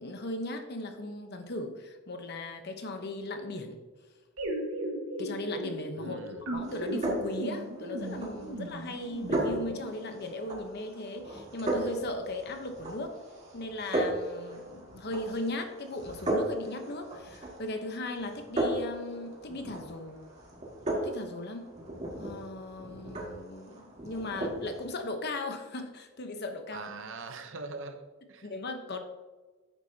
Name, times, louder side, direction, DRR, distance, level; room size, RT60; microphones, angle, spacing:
voice 1, 0.0-3.8 5.2-6.2 6.5-13.2 13.5-20.2 21.0-21.7 22.2-26.9 28.4-29.0, left 2 dB, 50° left, 6 dB, 0.9 m, -37 dB
sound 1, 4.4-9.8, right 1 dB, 80° right, 1.6 m, -37 dB
voice 2, 6.0-6.4 26.7-28.5, right 3 dB, 60° right, 7 dB, 0.8 m, -42 dB
sound 2, 6.6-24.9, right 1 dB, 30° right, 2.1 m, -36 dB
10.0 x 8.0 x 2.8 m, 1.3 s
head